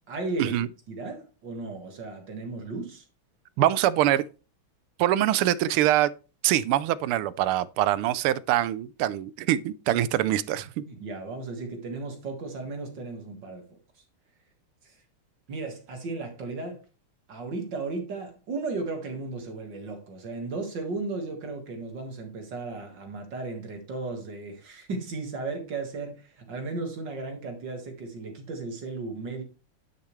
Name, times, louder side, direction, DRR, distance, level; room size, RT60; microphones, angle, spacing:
voice 1, 0.1-0.6 0.9-3.1 10.8-13.7 14.8-15.0 15.5-16.8 17.3-29.4, right 3 dB, 55° right, 2.3 m, -35 dB
voice 2, 3.6-4.2 5.0-6.1 6.4-10.8, right 13 dB, 85° right, 1.5 m, -24 dB
10.0 x 6.7 x 3.1 m
omnidirectional pair, 2.4 m